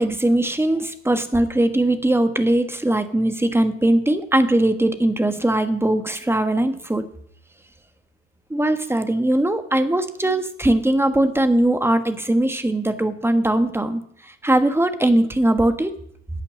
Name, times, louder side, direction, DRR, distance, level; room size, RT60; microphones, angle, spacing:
voice 1, 0.0-7.1 8.5-14.0 14.4-15.9, right 1 dB, 5° right, 8 dB, 1.4 m, -20 dB
12.0 x 8.2 x 6.6 m, 0.67 s
hypercardioid pair, 60°, 38 cm